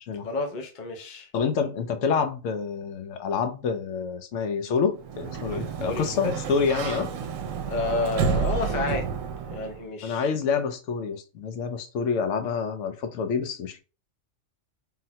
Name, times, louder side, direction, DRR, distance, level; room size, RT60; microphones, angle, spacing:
voice 1, 0.2-1.3 5.8-6.3 7.7-9.0 9.5-10.3, left 3 dB, 55° left, 0.5 m, -30 dB
voice 2, 1.3-7.1 10.0-13.8, left 5 dB, 70° left, 0.9 m, -27 dB
Sliding door, 5.0-9.8, right 6 dB, 75° right, 0.9 m, -30 dB
3.8 x 2.1 x 2.7 m
omnidirectional pair, 1.4 m